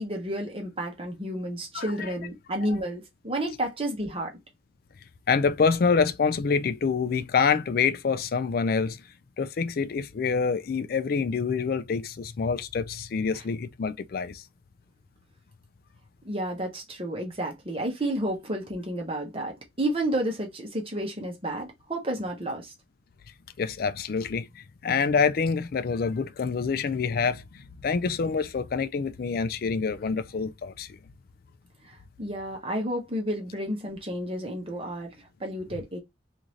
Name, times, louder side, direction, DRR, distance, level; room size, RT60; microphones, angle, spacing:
voice 1, 0.0-4.3 16.2-22.7 31.9-36.0, right 1 dB, 30° right, 1.0 m, -31 dB
voice 2, 1.7-2.1 5.3-9.0 9.4-14.4 23.6-31.0, left 5 dB, 50° left, 0.4 m, -26 dB
3.8 x 2.6 x 3.0 m
head